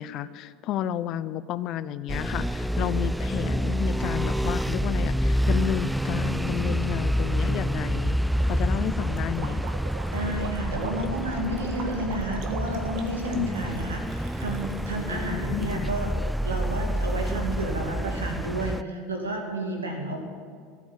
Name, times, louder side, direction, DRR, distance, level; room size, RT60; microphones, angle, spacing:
voice 1, 0.0-8.2 8.5-9.6 13.3-13.5 15.1-15.9, left 11 dB, 50° left, 16 dB, 0.5 m, -31 dB
sound 1, 2.1-18.8, equal, ahead, 0.3 m, -28 dB
Gurgling, 8.4-15.3, right 5 dB, 55° right, 1.5 m, -41 dB
voice 2, 10.1-16.1 16.4-20.2, right 1 dB, 90° right, 1 dB, 2.4 m, -31 dB
14.5 x 8.2 x 8.9 m, 2.1 s
hypercardioid pair, 80°, 0 cm